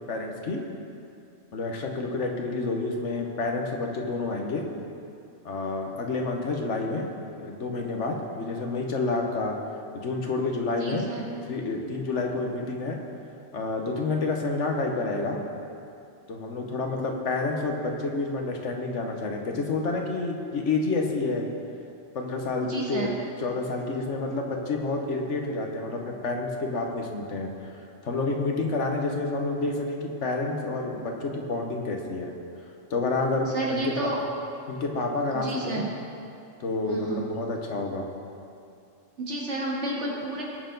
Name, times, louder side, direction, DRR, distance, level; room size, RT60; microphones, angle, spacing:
voice 1, 0.1-0.6 1.5-4.6 5.4-7.0 7.4-9.6 9.9-11.0 11.5-13.0 13.5-15.4 16.3-21.5 22.1-23.1 23.4-27.7 28.0-32.3 32.9-33.9 34.7-35.8 36.6-38.1, left 3 dB, 80° left, 2 dB, 1.5 m, -29 dB
voice 2, 10.8-11.2 22.6-23.1 33.5-34.2 35.3-35.9 36.9-37.2 39.2-40.4, right 2 dB, 70° right, -3 dB, 2.2 m, -30 dB
19.0 x 6.7 x 3.9 m, 2.6 s
omnidirectional pair, 1.2 m